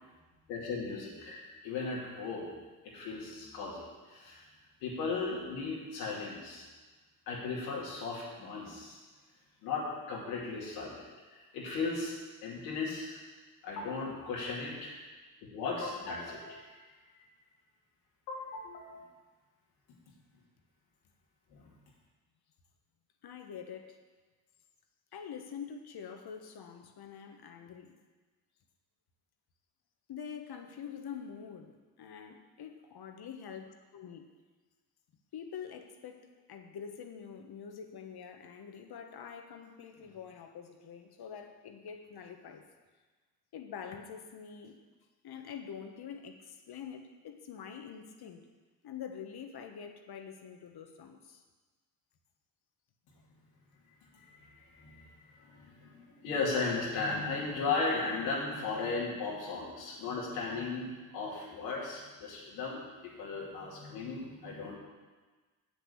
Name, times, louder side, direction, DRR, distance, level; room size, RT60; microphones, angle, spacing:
voice 1, 0.5-2.5 2.8-4.4 4.8-6.6 7.3-9.0 9.6-11.0 11.3-12.2 12.4-13.2 13.6-15.0 15.4-16.6 18.3-19.0 21.5-21.7 54.1-64.8, left 4 dB, 90° left, -4 dB, 2.6 m, -36 dB
voice 2, 23.2-24.0 25.1-28.0 30.1-34.3 35.3-42.7 43.5-44.8 45.2-48.4 48.8-51.4, left 7 dB, 60° left, 5 dB, 1.4 m, -46 dB
8.0 x 6.7 x 8.0 m, 1.3 s
supercardioid pair, 55°, 44 cm